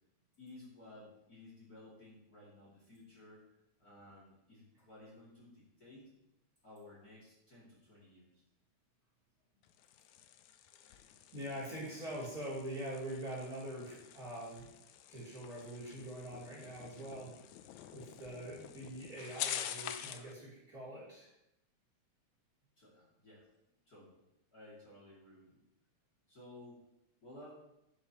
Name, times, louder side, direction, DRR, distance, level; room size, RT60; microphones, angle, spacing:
voice 1, 0.4-6.1 6.6-8.4 22.8-23.5 23.8-24.2 24.5-25.6 26.3-26.8 27.2-27.5, left 1 dB, 30° left, -6 dB, 2.9 m, -56 dB
sound 1, 9.6-20.3, left 11 dB, 80° left, 1.9 m, -47 dB
voice 2, 11.3-14.7 15.1-17.4 17.9-21.3, right 1 dB, 30° right, -7 dB, 3.5 m, -44 dB
10.5 x 10.5 x 3.0 m, 0.84 s
omnidirectional pair, 3.4 m